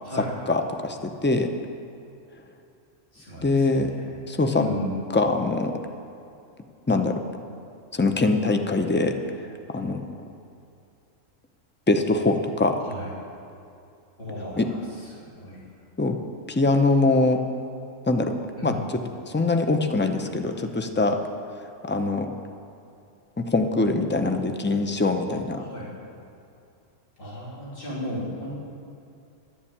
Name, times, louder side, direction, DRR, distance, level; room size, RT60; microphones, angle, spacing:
voice 1, 0.2-1.5 3.4-3.9 4.3-4.7 5.1-5.8 6.9-7.2 7.9-9.2 9.7-10.1 11.9-12.9 14.6-14.7 16.0-16.2 16.5-17.4 18.1-18.4 18.6-18.7 19.3-21.2 21.8-22.3 23.4-25.7, left 3 dB, 15° left, 6 dB, 0.4 m, -23 dB
voice 2, 3.1-4.0 4.6-5.0 12.8-13.1 14.2-14.8 15.1-15.6 18.6-18.8 25.6-25.9 27.2-28.5, left 1 dB, 45° left, -8 dB, 3.4 m, -34 dB
12.0 x 7.2 x 8.7 m, 2.6 s
omnidirectional pair, 1.3 m